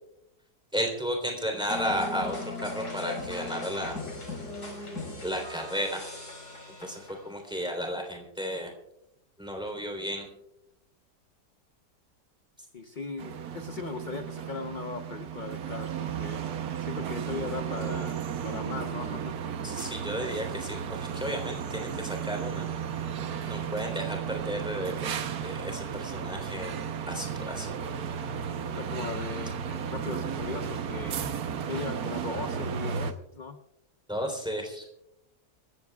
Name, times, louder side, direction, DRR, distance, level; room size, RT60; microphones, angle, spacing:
voice 1, 0.7-4.0 5.2-6.0 6.8-8.7 9.4-10.3 19.6-22.7 23.4-26.7 27.1-27.7 34.1-34.9, equal, 5° right, 2 dB, 3.4 m, -33 dB
sound 1, 1.7-7.4, left 2 dB, 75° left, 5.2 m, -38 dB
voice 2, 12.7-16.5 16.8-19.4 28.8-31.2 31.7-33.6, left 4 dB, 35° left, 6 dB, 0.8 m, -38 dB
sound 2, 13.2-33.1, right 7 dB, 65° right, 1.4 m, -34 dB
26.0 x 15.0 x 2.4 m, 0.84 s
omnidirectional pair, 1.8 m